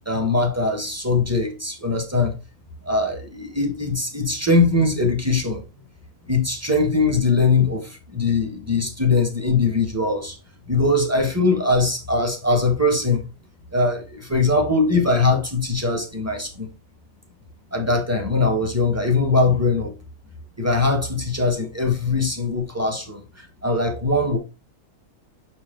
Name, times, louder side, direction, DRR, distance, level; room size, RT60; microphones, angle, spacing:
voice 1, 0.0-2.3 2.8-5.6 6.3-10.3 10.7-13.2 13.7-16.7 17.7-19.9 20.6-24.4, left 3 dB, 10° right, 1.3 m, -21 dB
6.8 x 4.4 x 3.8 m
omnidirectional pair, 1.6 m